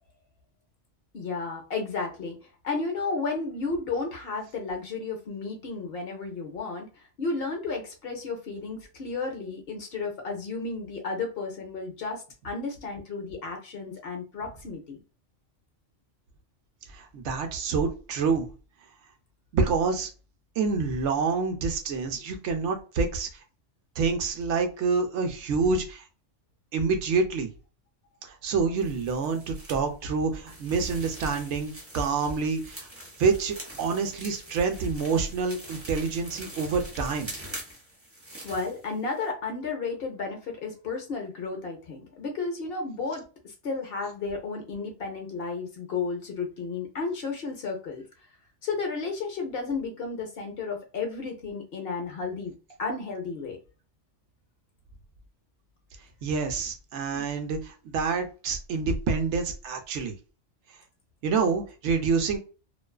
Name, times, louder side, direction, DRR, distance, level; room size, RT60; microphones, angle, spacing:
voice 1, 1.1-2.4 2.6-6.9 7.2-15.0 38.4-48.0 48.6-52.5 52.8-53.6 57.1-57.2, left 4 dB, 60° left, 2 dB, 0.8 m, -33 dB
voice 2, 16.9-18.5 19.5-20.1 20.6-23.3 24.0-26.0 26.7-27.5 28.2-32.9 33.2-37.3 56.2-60.2 61.2-62.4, right 4 dB, 75° right, 5 dB, 0.9 m, -27 dB
sound 1, 28.8-29.8 30.5-39.3, right 1 dB, 15° right, 0.5 m, -44 dB
2.5 x 2.3 x 2.2 m, 0.34 s
omnidirectional pair, 1.2 m